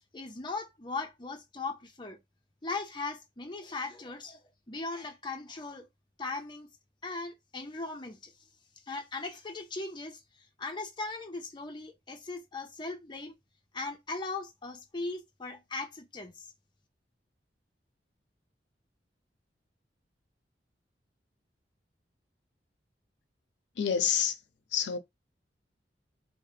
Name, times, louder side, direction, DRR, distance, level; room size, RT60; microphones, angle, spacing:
voice 1, 0.1-2.2 2.6-4.4 4.7-5.9 6.2-6.7 7.0-8.3 8.9-10.2 10.6-13.3 13.7-16.5, left 3 dB, 25° left, 0.6 m, -38 dB
voice 2, 23.8-24.4 24.7-25.0, left 8 dB, 85° left, 0.5 m, -27 dB
2.8 x 2.1 x 3.2 m
head